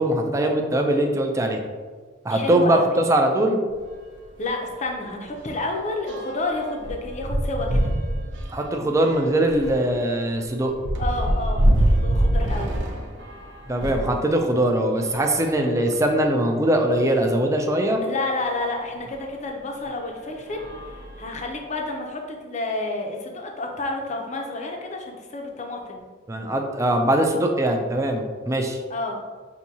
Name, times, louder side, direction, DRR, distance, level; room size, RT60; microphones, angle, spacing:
voice 1, 0.0-1.6 2.2-3.6 8.5-10.7 13.7-18.0 26.3-28.8, right 1 dB, 15° right, 3 dB, 0.3 m, -21 dB
voice 2, 2.3-2.8 4.4-7.9 11.0-12.7 18.0-20.6 21.2-26.0 28.9-29.2, left 2 dB, 40° left, 2 dB, 0.6 m, -30 dB
sound 1, 3.7-3.9 4.2-4.4 4.7-14.2 14.9-16.2 16.9-17.0 17.3-17.4 19.1-19.2 19.8-20.1 20.5-21.7, right 1 dB, 75° right, 0.5 m, -26 dB
5.8 x 2.7 x 2.7 m, 1.5 s
head